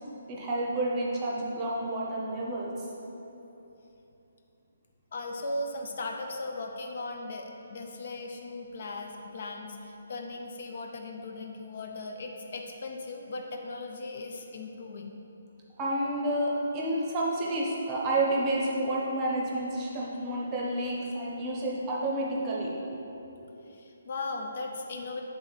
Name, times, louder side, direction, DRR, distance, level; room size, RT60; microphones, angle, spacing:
voice 1, 0.3-2.7 15.8-22.7, right 1 dB, 15° right, -4 dB, 0.8 m, -30 dB
voice 2, 5.1-15.2 23.7-25.2, left 2 dB, 45° left, 2 dB, 0.5 m, -38 dB
8.0 x 3.8 x 4.0 m, 3.0 s
hypercardioid pair, 170°, 0 cm